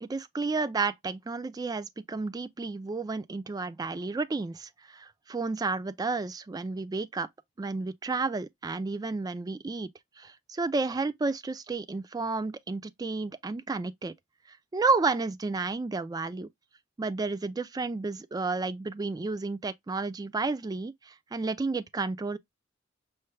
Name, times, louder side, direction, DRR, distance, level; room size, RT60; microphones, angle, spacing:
voice 1, 0.0-7.3 7.6-9.9 10.2-14.1 14.7-16.5 17.0-22.4, right 3 dB, 20° right, 0.3 m, -31 dB
5.6 x 2.2 x 3.1 m
head